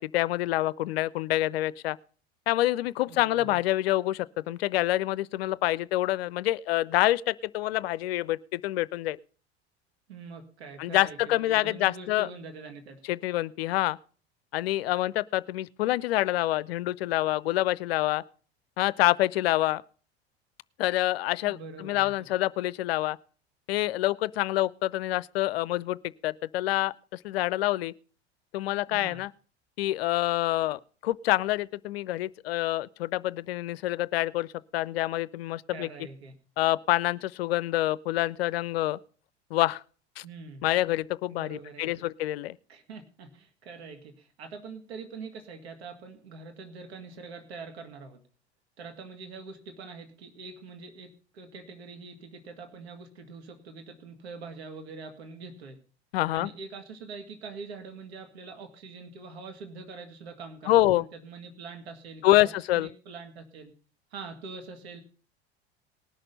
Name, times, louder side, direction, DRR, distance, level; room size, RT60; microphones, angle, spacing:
voice 1, 0.0-2.0 2.5-9.2 10.8-12.3 13.1-14.0 14.5-18.2 18.8-19.8 20.8-23.2 23.7-26.0 26.2-27.9 28.5-29.3 29.8-35.9 36.6-39.0 39.5-39.8 40.2-40.3 40.6-42.6 56.1-56.5 60.7-61.0 62.2-62.9, left 16 dB, 65° left, 0.5 m, -27 dB
voice 2, 3.1-3.6 10.1-13.0 21.4-22.1 28.9-29.2 35.7-36.3 40.2-40.6 41.3-41.9 42.7-48.2 48.8-55.8 56.3-63.7 64.1-65.0, right 4 dB, 70° right, 2.0 m, -44 dB
19.0 x 6.6 x 5.5 m
figure-of-eight pair, 75°, 33 cm